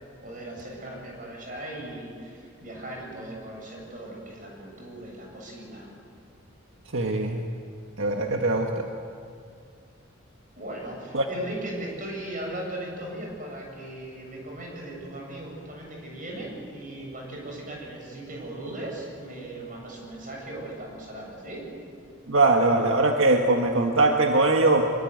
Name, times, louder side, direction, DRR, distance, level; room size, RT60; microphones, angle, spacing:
voice 1, 0.0-5.9 10.6-21.7, right 1 dB, 40° right, 0 dB, 7.8 m, -38 dB
voice 2, 6.9-7.4 8.0-8.9 11.1-11.3 22.3-24.8, right 2 dB, 75° right, 2 dB, 1.6 m, -21 dB
25.0 x 22.5 x 9.6 m, 2.3 s
head